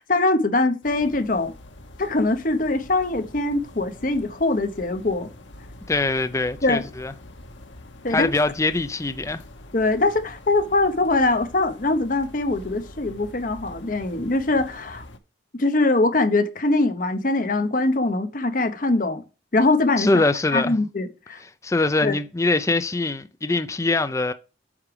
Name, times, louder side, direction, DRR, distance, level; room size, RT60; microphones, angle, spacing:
voice 1, 0.0-1.5 2.0-5.3 6.6-6.8 8.0-8.3 9.7-15.0 15.6-19.2 19.5-20.1 20.5-21.4 22.0-22.1, left 2 dB, 45° left, 0.9 m, -22 dB
sound 1, 0.8-15.2, left 1 dB, 85° left, 1.2 m, -44 dB
voice 2, 5.9-7.1 8.1-9.4 20.0-20.8 21.4-24.3, left 2 dB, 15° left, 0.4 m, -23 dB
8.6 x 3.3 x 5.9 m
head